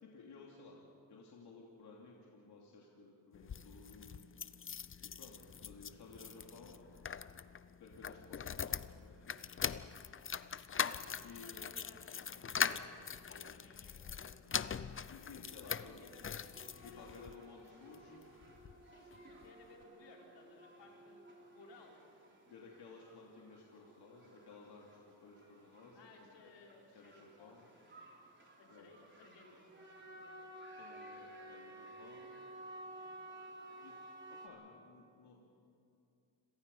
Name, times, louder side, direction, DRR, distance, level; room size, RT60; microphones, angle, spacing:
voice 1, 0.0-4.2 5.0-6.8 7.8-9.6 11.2-11.6 15.1-16.0 16.8-18.3 22.4-26.5 26.9-27.7 28.7-28.9 30.8-32.4 33.8-33.9 34.3-35.5, left 4 dB, 65° left, -2 dB, 3.0 m, -56 dB
sound 1, 3.3-17.4 17.9-18.8 19.1-19.2 19.4-19.5, left 7 dB, 30° left, 0.6 m, -42 dB
voice 2, 9.8-10.1 10.6-14.7 15.6-16.5 16.8-17.2 17.9-18.0 18.9-21.2 21.5-22.0 25.9-27.9 28.6-30.5 33.0-33.2, left 3 dB, 85° left, -1 dB, 4.7 m, -61 dB
sound 2, 16.5-34.5, right 1 dB, 25° right, 4.1 m, -55 dB
29.5 x 22.0 x 5.5 m, 2.6 s
cardioid pair, 95°, 42 cm